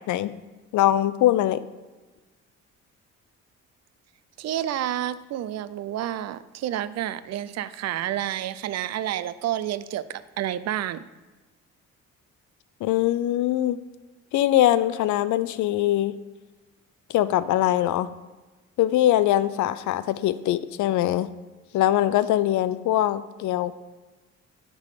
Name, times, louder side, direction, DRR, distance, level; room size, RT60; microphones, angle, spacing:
voice 1, 0.7-1.6 12.8-13.8 14.3-16.1 17.1-18.1 18.8-21.3 21.7-23.7, left 13 dB, 75° left, 15 dB, 0.5 m, -22 dB
voice 2, 4.4-11.0, right 12 dB, 60° right, 15 dB, 0.5 m, -29 dB
10.5 x 3.8 x 4.9 m, 1.2 s
cardioid pair, 90°, 30 cm